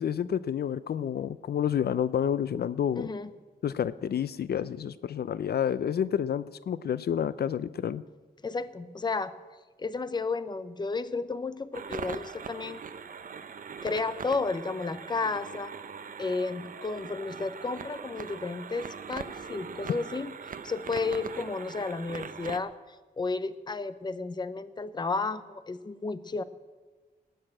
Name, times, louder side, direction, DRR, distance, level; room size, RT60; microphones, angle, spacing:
voice 1, 0.0-3.1 3.6-8.0, left 9 dB, 75° left, 16 dB, 0.4 m, -29 dB
voice 2, 2.9-3.3 8.4-9.3 9.8-12.8 13.8-15.7 16.2-20.3 20.6-26.4, left 4 dB, 25° left, 13 dB, 0.6 m, -32 dB
sound 1, 11.7-22.6, right 6 dB, 55° right, 0.6 m, -41 dB
18.5 x 6.7 x 8.8 m, 1.3 s
wide cardioid pair, 150°, 17 cm